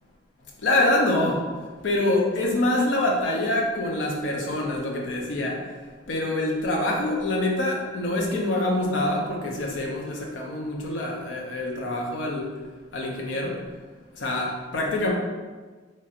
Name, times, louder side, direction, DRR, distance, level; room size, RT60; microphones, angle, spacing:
voice 1, 0.6-1.5 1.8-5.6 6.1-12.5 12.9-13.6 14.2-15.1, left 1 dB, 80° left, -1 dB, 0.6 m, -25 dB
3.1 x 2.8 x 2.4 m, 1.4 s
head